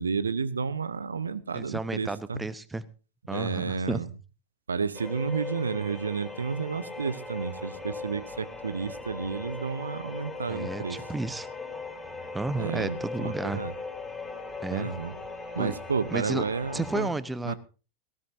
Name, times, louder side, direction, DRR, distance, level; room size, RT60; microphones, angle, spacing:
voice 1, 0.0-2.4 3.3-4.1 4.7-11.0 12.6-13.7 14.7-15.2 15.5-17.1 17.5-17.6, right 5 dB, 75° right, 17 dB, 0.9 m, -31 dB
voice 2, 1.5-2.9 3.3-4.0 10.5-11.5 12.3-13.6 14.6-14.9 15.6-15.7 16.1-16.4 16.7-17.5, right 2 dB, 10° right, 16 dB, 1.0 m, -32 dB
sound 1, 4.9-17.0, left 3 dB, 10° left, 3.8 m, -39 dB
18.5 x 17.0 x 2.7 m, 0.34 s
figure-of-eight pair, 90°, 0 cm